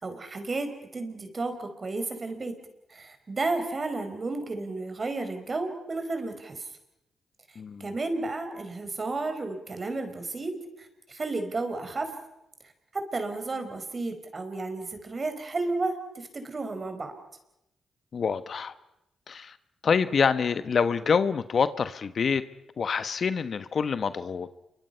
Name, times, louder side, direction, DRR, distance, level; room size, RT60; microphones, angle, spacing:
voice 1, 0.0-2.5 2.9-6.7 7.8-12.1 12.9-17.1, right 3 dB, 40° right, 7 dB, 4.8 m, -32 dB
voice 2, 7.6-7.9 18.1-18.7 19.3-19.5 19.8-22.4 22.8-24.5, left 6 dB, 60° left, 13 dB, 1.2 m, -26 dB
28.5 x 24.0 x 5.7 m, 0.88 s
supercardioid pair, 45°, 0 cm